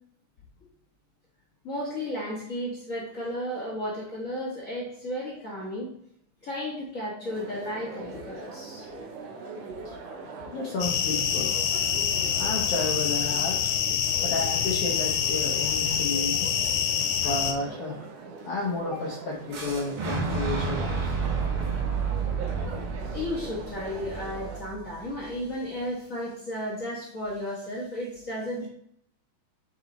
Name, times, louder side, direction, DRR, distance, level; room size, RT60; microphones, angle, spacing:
voice 1, 1.6-5.9 6.4-8.9 18.8-19.0 23.1-28.7, left 1 dB, 40° left, -5 dB, 1.2 m, -34 dB
sound 1, 7.3-24.6, right 3 dB, 85° right, 2.5 m, -42 dB
voice 2, 10.5-11.5 12.4-13.6 14.2-16.5 17.2-18.1 18.5-21.1, left 2 dB, 65° left, -2 dB, 1.6 m, -31 dB
sound 2, 10.8-17.5, left 8 dB, 90° left, 1.4 m, -26 dB
Boom, 19.5-25.4, right 5 dB, 55° right, 1.7 m, -31 dB
8.0 x 4.0 x 3.9 m, 0.68 s
omnidirectional pair, 3.6 m